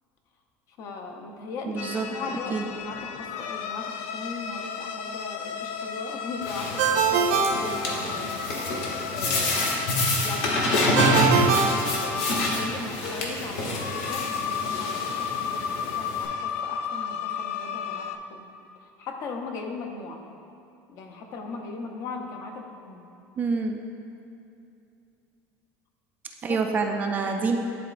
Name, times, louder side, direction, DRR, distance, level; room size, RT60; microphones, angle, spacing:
voice 1, 0.8-8.4 9.1-9.7 10.2-18.5 18.8-20.2 20.9-23.0 26.5-26.6, left 4 dB, 45° left, 3 dB, 0.6 m, -39 dB
voice 2, 1.7-2.0 2.5-2.6 23.4-23.8 26.4-27.6, right 4 dB, 25° right, 3 dB, 0.3 m, -26 dB
sound 1, 1.8-18.2, left 7 dB, 85° left, 0.4 m, -34 dB
sound 2, 6.4-16.3, left 1 dB, 65° left, 1.1 m, -27 dB
Ringtone, 6.8-8.5 11.0-12.6, right 6 dB, 85° right, 0.5 m, -24 dB
11.0 x 3.8 x 2.5 m, 2.6 s
cardioid pair, 160°, 7 cm